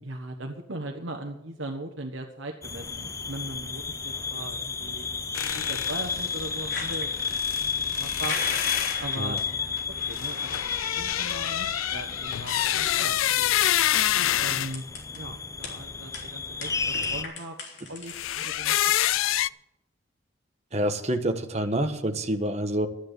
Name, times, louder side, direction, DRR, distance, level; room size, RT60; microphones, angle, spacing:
voice 1, 0.0-5.1 5.5-7.1 7.6-7.7 8.0-8.4 9.0-13.5 14.4-14.8 15.1-17.6 17.9-18.7, right 1 dB, 75° right, 4 dB, 1.3 m, -39 dB
sound 1, 2.6-17.2, left 5 dB, 15° left, 0.5 m, -32 dB
sound 2, 5.3-14.7 18.1-19.5, left 13 dB, 85° left, 0.4 m, -28 dB
sound 3, 6.7-7.1 8.2-9.4 9.7-10.1 10.8-10.9 11.1-11.2 12.2-12.3 13.6-15.2 15.6-15.7 16.1-16.3 16.6-18.5, left 4 dB, 55° left, 3.3 m, -36 dB
voice 2, 20.7-22.9, right 1 dB, 35° right, 6 dB, 1.3 m, -27 dB
13.0 x 9.7 x 8.1 m, 0.85 s
head